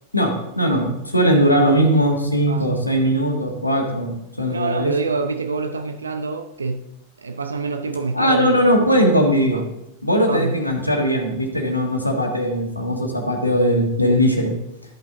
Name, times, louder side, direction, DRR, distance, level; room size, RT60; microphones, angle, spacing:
voice 1, 0.1-4.9 8.1-9.6 10.0-14.5, equal, 85° left, 1.6 m, -19 dB
voice 2, 2.5-2.8 4.5-6.8 7.2-8.8 9.5-9.6 10.2-10.6 14.0-14.2, right 4 dB, 75° right, 0.6 m, -26 dB
13.0 x 5.7 x 3.6 m
figure-of-eight pair, 90°, 0 cm